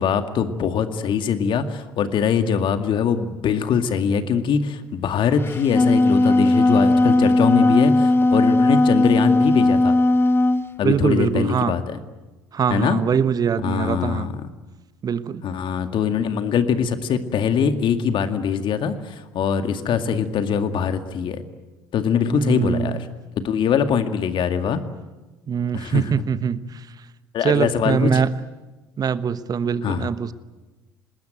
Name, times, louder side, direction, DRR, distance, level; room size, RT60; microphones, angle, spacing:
voice 1, 0.0-10.0 10.8-12.0 12.7-13.0 13.6-14.3 15.4-21.4 21.9-23.1 23.4-24.8 25.7-26.0 27.3-28.2 29.8-30.1, left 7 dB, 55° left, 8 dB, 2.1 m, -22 dB
Wind instrument woodwind instrument, 5.5-10.7, left 2 dB, 20° left, 1.2 m, -17 dB
voice 2, 10.8-11.8 12.5-14.4 15.0-15.5 22.3-23.0 25.5-26.9 27.4-28.3 29.0-30.3, right 7 dB, 40° right, 14 dB, 1.1 m, -23 dB
26.5 x 20.0 x 9.2 m, 1.2 s
hypercardioid pair, 60°, 10 cm